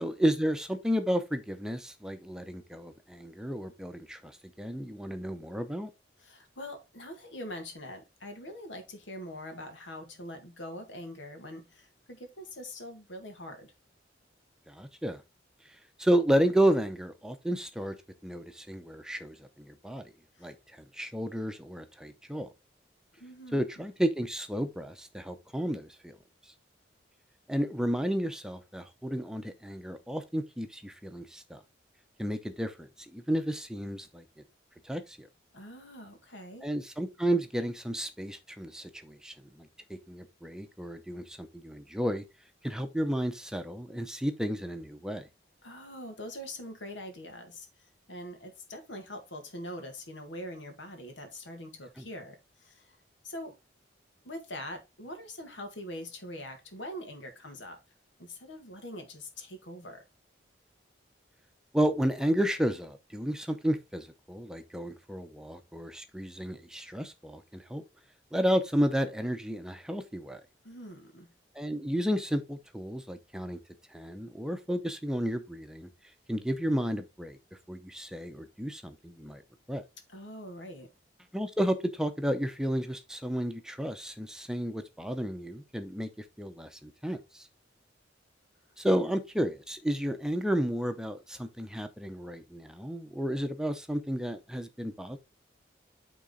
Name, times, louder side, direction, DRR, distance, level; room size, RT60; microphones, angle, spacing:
voice 1, 0.0-4.3 4.6-5.9 14.7-15.2 16.0-17.9 18.2-20.0 20.4-20.5 20.9-22.5 23.5-26.2 27.5-31.6 32.2-34.2 34.8-35.3 36.6-39.7 40.1-42.2 42.6-45.2 52.0-52.1 61.7-67.8 68.3-70.4 71.6-73.6 73.9-75.9 76.3-77.4 77.7-79.4 79.7-79.8 81.3-86.1 86.4-87.4 88.8-95.2, equal, 5° right, 0.7 m, -32 dB
voice 2, 6.2-13.7 20.4-20.5 23.2-23.8 35.5-36.7 45.6-47.7 48.1-53.0 53.2-53.5 54.2-57.8 58.2-60.0 66.8-66.9 70.6-71.3 80.1-80.9 88.8-89.0, left 1 dB, 85° left, 2.0 m, -43 dB
8.9 x 3.8 x 3.9 m
head